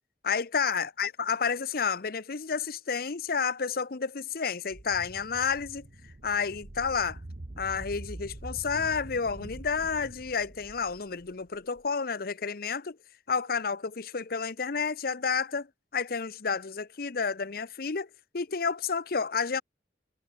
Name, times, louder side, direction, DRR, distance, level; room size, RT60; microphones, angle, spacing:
voice 1, 0.2-5.8 6.2-7.2 7.6-13.0 13.3-15.7 15.9-18.1 18.3-19.6, left 5 dB, 55° left, 0.8 m, -30 dB
sound 1, 4.7-11.8, right 1 dB, 45° right, 1.0 m, -45 dB
head